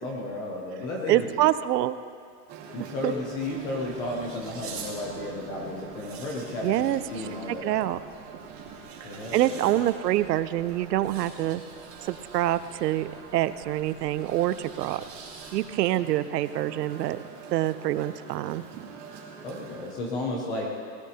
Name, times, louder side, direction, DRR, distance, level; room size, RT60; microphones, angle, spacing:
voice 1, 0.0-1.5 2.7-7.9 9.0-9.8 15.9-16.0 19.4-20.7, left 2 dB, 10° left, -2 dB, 0.3 m, -33 dB
voice 2, 1.1-1.9 3.0-3.1 6.6-7.0 7.6-8.0 9.3-11.6 12.0-15.0 15.5-17.2 17.5-18.6, right 14 dB, 85° right, 15 dB, 0.7 m, -26 dB
sound 1, 2.5-19.9, right 5 dB, 50° right, 2.8 m, -45 dB
sound 2, 3.2-15.9, right 5 dB, 25° right, 3.0 m, -48 dB
18.5 x 18.5 x 2.8 m, 2.2 s
supercardioid pair, 150°, 47 cm